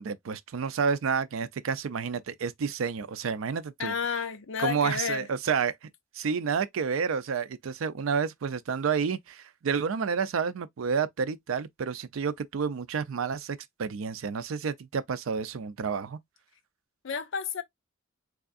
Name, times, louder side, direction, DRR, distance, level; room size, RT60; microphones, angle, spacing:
voice 1, 0.0-3.9 4.6-5.7 6.1-16.2, right 6 dB, 85° right, 0.4 m, -30 dB
voice 2, 3.8-5.3 17.0-17.6, left 6 dB, 70° left, 0.6 m, -31 dB
3.6 x 3.3 x 2.4 m
head